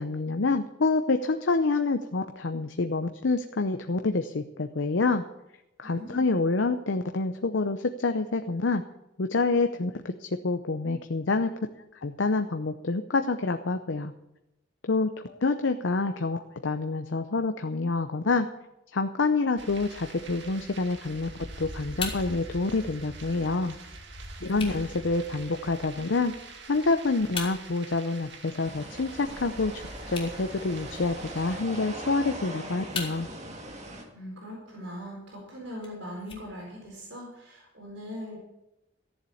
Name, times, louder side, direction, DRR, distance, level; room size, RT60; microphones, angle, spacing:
voice 1, 0.0-5.2 5.8-8.8 9.2-11.5 12.0-14.1 14.9-18.5 18.9-21.3 21.6-23.8 24.4-26.3 26.7-29.8 30.1-33.3, left 3 dB, 75° left, 7 dB, 0.7 m, -27 dB
voice 2, 5.8-6.4 24.4-24.9 34.1-38.4, equal, 85° right, -2 dB, 4.4 m, -41 dB
sound 1, 19.6-31.6, right 2 dB, 65° right, 1.9 m, -44 dB
sound 2, 21.1-37.1, left 4 dB, 30° left, 3.2 m, -44 dB
sound 3, 28.6-34.0, right 1 dB, 40° right, 2.1 m, -41 dB
14.0 x 7.4 x 8.5 m, 0.90 s
head